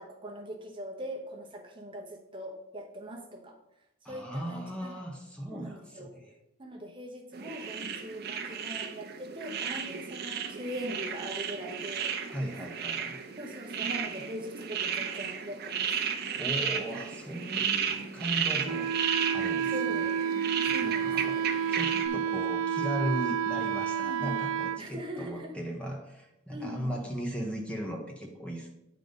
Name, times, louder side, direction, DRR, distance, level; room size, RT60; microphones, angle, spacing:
voice 1, 0.0-3.6 4.0-5.0 5.5-6.1 6.6-12.2 13.4-15.9 19.7-20.2 20.6-21.4 22.1-22.4 24.0-24.4 24.8-25.5 26.5-27.1, equal, 25° right, 0 dB, 1.0 m, -41 dB
voice 2, 4.0-6.3 12.3-13.2 16.3-18.9 19.3-20.1 20.7-21.4 21.7-28.7, equal, 5° left, 0 dB, 0.9 m, -37 dB
sound 1, 7.3-22.1, right 7 dB, 50° right, 0.7 m, -34 dB
Wind instrument woodwind instrument, 18.6-24.8, right 8 dB, 85° right, 0.4 m, -30 dB
9.2 x 3.9 x 5.3 m, 0.87 s
head